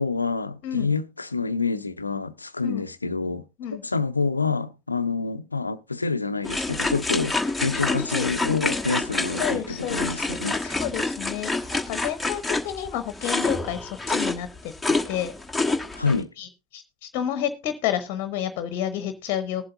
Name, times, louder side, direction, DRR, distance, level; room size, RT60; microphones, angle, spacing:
voice 1, 0.0-3.4 3.8-10.8 15.9-16.3, left 4 dB, 85° left, 0.5 m, -27 dB
sound 1, 6.4-16.2, left 3 dB, 5° left, 1.3 m, -27 dB
voice 2, 7.8-8.3 9.4-10.2 10.6-15.3 16.4-19.7, left 10 dB, 50° left, 0.9 m, -30 dB
20.0 x 7.7 x 2.6 m
figure-of-eight pair, 75°, 0 cm